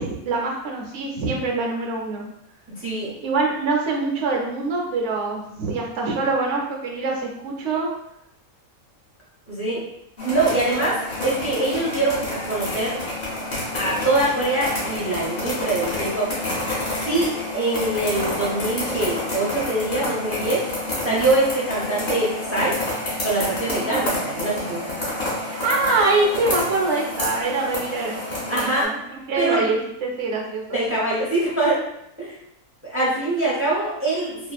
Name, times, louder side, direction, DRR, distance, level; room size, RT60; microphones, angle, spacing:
voice 1, 0.0-2.2 3.2-7.9 23.7-24.0 25.4-30.8, right 3 dB, 65° right, -1 dB, 0.8 m, -24 dB
voice 2, 2.7-3.1 9.5-9.8 10.2-13.0 13.7-16.3 16.8-20.6 21.0-22.8 23.2-24.9 28.5-28.9 29.4-29.6 30.7-31.8 32.2-32.3 32.8-34.5, right 2 dB, 20° right, -7 dB, 0.3 m, -23 dB
sound 1, 10.2-28.8, left 1 dB, 45° left, 0.9 m, -29 dB
2.7 x 2.4 x 2.3 m, 0.80 s
omnidirectional pair, 1.5 m